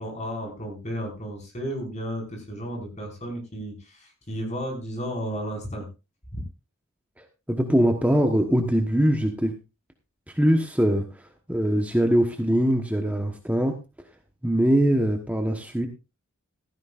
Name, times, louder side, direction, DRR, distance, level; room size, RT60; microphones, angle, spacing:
voice 1, 0.0-5.9 6.3-6.4, equal, 35° left, 1 dB, 5.1 m, -33 dB
voice 2, 7.2-9.5 10.3-13.8 14.4-15.9, equal, 5° right, 4 dB, 1.1 m, -22 dB
16.0 x 13.5 x 2.5 m, 0.28 s
head